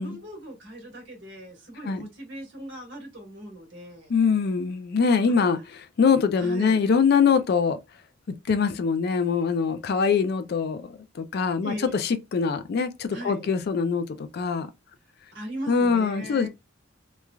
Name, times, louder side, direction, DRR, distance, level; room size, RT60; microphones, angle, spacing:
voice 1, 0.0-4.1 5.3-5.4 6.4-6.8 11.6-12.0 13.1-13.5 15.3-16.5, right 1 dB, 65° right, 1.5 m, -39 dB
voice 2, 4.1-5.6 6.0-7.8 8.5-14.7 15.7-16.5, left 5 dB, 50° left, 0.3 m, -23 dB
3.1 x 2.2 x 2.3 m
head